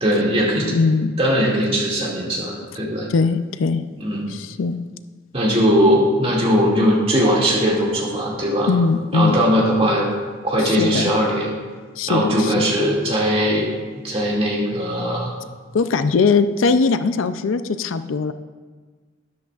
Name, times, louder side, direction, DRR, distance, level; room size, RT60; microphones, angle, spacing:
voice 1, 0.0-0.7 1.2-3.1 4.0-4.3 5.3-8.7 9.1-10.1 10.4-11.5 12.1-13.7 14.0-15.3, equal, 30° right, -4 dB, 2.3 m, -19 dB
voice 2, 0.6-1.1 3.1-3.9 4.3-4.8 8.7-9.4 10.6-11.1 12.0-12.6 15.7-18.3, left 4 dB, 75° left, 11 dB, 0.4 m, -20 dB
12.5 x 11.0 x 2.4 m, 1.4 s
head